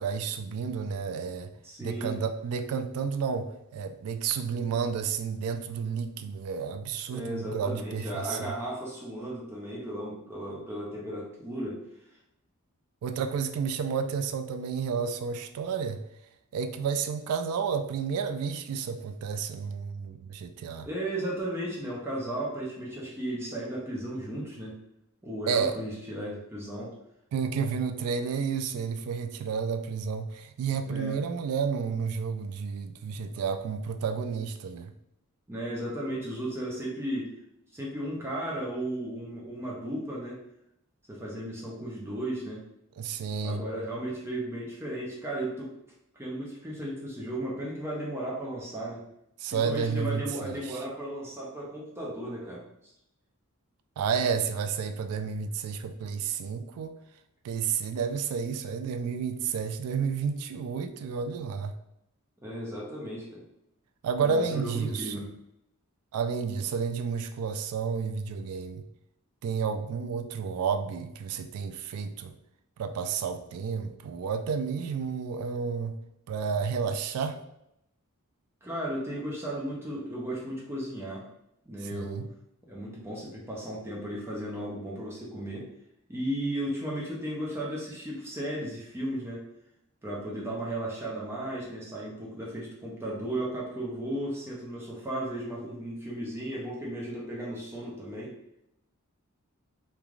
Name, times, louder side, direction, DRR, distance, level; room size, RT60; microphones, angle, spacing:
voice 1, 0.0-1.5 1.8-8.5 13.0-16.0 16.5-20.9 25.5-25.8 27.3-34.9 43.0-43.6 49.4-50.8 54.0-57.0 57.4-61.8 64.0-65.3 66.1-68.8 69.4-72.3 72.8-76.0 76.3-77.4 81.8-82.3, right 6 dB, 75° right, 7 dB, 0.3 m, -31 dB
voice 2, 1.6-2.2 7.1-11.8 20.9-24.7 25.2-26.9 30.9-31.2 35.5-37.3 37.7-40.4 41.1-42.6 43.4-45.7 46.1-49.0 49.5-52.6 62.4-63.4 64.2-65.2 78.6-81.2 81.7-82.2 82.7-85.7 86.1-89.4 90.0-98.3, right 1 dB, 10° right, -4 dB, 0.5 m, -35 dB
3.1 x 2.3 x 2.4 m, 0.81 s
head